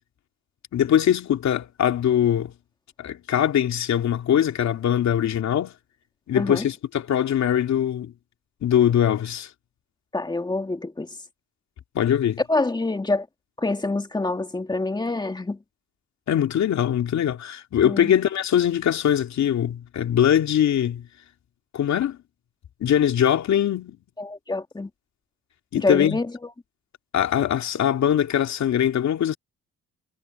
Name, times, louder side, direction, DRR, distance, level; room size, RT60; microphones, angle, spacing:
voice 1, 0.7-2.5 3.0-5.7 6.3-8.1 8.6-9.5 11.9-12.4 16.3-21.1 21.7-22.2 22.8-24.0 25.7-26.2 27.1-29.4, left 10 dB, 65° left, 2.5 m, -22 dB
voice 2, 6.3-6.7 10.1-11.2 12.5-13.3 13.6-15.6 17.8-18.1 24.2-24.9 25.8-26.5, left 2 dB, 15° left, 2.0 m, -26 dB
cardioid pair, 90°, 30 cm